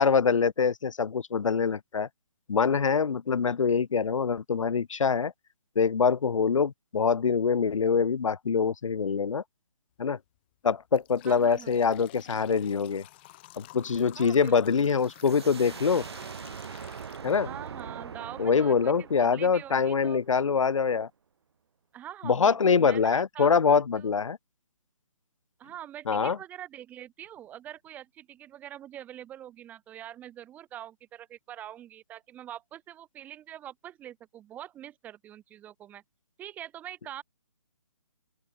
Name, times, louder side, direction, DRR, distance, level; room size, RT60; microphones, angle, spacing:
voice 1, 0.0-2.1 2.5-5.3 5.8-9.4 10.0-10.2 10.6-13.0 13.6-16.0 17.2-17.5 18.4-21.1 22.2-24.4 26.1-26.4, left 6 dB, 80° left, 0.8 m, -24 dB
sound 1, 10.0-10.2 10.7-17.8 18.3-18.4 19.2-19.3 19.8-19.9 20.4-20.6, left 19 dB, 20° left, 0.9 m, -51 dB
voice 2, 11.2-11.8 14.2-14.6 17.4-20.2 21.9-24.1 25.6-36.0 36.4-37.2, right 11 dB, 10° right, 1.3 m, -44 dB
sound 2, 15.0-20.6, right 7 dB, 55° right, 4.7 m, -42 dB
open air
hypercardioid pair, 160°, 16 cm